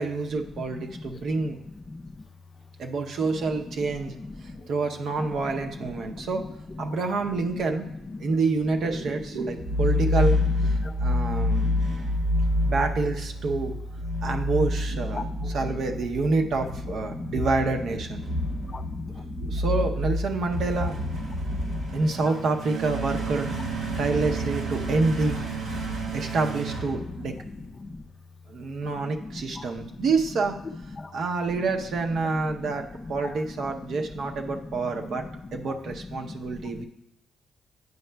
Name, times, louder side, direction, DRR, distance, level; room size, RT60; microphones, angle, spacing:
voice 1, 0.0-1.6 2.8-6.5 6.8-7.9 8.2-10.4 10.6-11.7 12.7-13.7 14.2-18.2 19.2-21.0 21.9-23.5 24.0-25.4 26.1-27.4 28.5-30.6 31.1-35.2 35.5-36.8, right 3 dB, 65° right, 0.6 m, -27 dB
voice 2, 6.1-6.4 8.2-8.3 10.8-10.9 11.4-12.0 15.1-15.5 17.1-17.3 18.2-19.6 21.3-22.0 23.9-24.0 25.9-26.1 27.1-27.2 27.8-28.0 29.2-29.6 31.0-31.1 32.6-32.7 33.2-33.3 34.2-34.3 35.1-35.2 36.2-36.4 36.7-36.8, left 3 dB, 30° left, 0.3 m, -38 dB
sound 1, 9.6-27.7, left 1 dB, 85° right, 1.4 m, -28 dB
9.3 x 5.6 x 2.2 m
cardioid pair, 90°, 0 cm